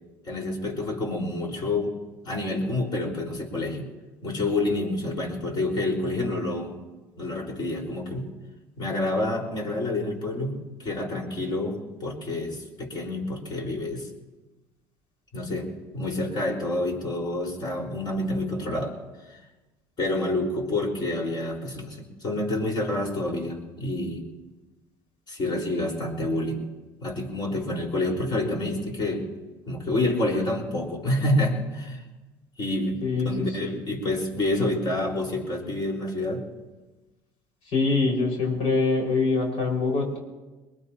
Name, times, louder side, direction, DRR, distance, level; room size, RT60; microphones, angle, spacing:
voice 1, 0.2-1.9 2.2-3.9 4.2-6.8 7.2-8.3 8.8-14.1 15.3-19.0 19.3-19.4 20.0-24.2 25.3-26.6 27.0-29.3 29.7-32.0 32.6-36.4, left 2 dB, 45° left, 0 dB, 4.9 m, -28 dB
voice 2, 33.0-33.7 37.6-40.2, left 3 dB, 75° left, -1 dB, 5.6 m, -24 dB
22.5 x 21.0 x 3.0 m, 1.2 s
supercardioid pair, 85°, 10 cm